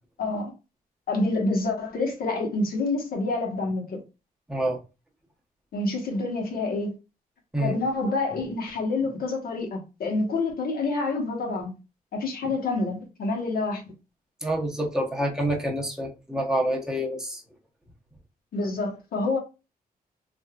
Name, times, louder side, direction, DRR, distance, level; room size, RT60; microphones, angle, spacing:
voice 1, 0.2-0.5 1.1-4.0 5.7-7.0 7.6-11.7 12.1-13.8 18.5-19.4, left 3 dB, 70° left, 1.2 m, -27 dB
voice 2, 14.4-17.4, right 1 dB, 5° right, 0.9 m, -27 dB
3.5 x 2.6 x 2.3 m
wide cardioid pair, 135°, 16 cm